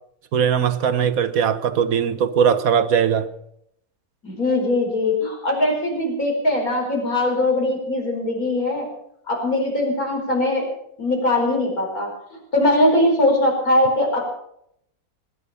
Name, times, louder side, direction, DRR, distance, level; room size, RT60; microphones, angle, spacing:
voice 1, 0.3-3.3, right 7 dB, 70° right, 1.4 m, -20 dB
voice 2, 4.2-8.9 9.3-10.7 11.0-14.3, left 1 dB, 70° left, 5.2 m, -21 dB
20.0 x 10.5 x 6.8 m
omnidirectional pair, 1.6 m